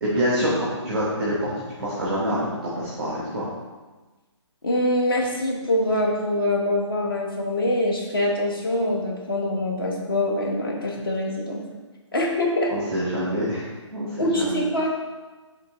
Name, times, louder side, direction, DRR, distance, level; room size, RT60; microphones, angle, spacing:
voice 1, 0.0-3.5 12.7-14.6, equal, ahead, -6 dB, 0.5 m, -26 dB
voice 2, 4.6-11.6 12.1-12.7 14.2-14.9, left 1 dB, 50° left, -1 dB, 1.2 m, -24 dB
10.0 x 3.6 x 3.0 m, 1.3 s
hypercardioid pair, 175°, 16 cm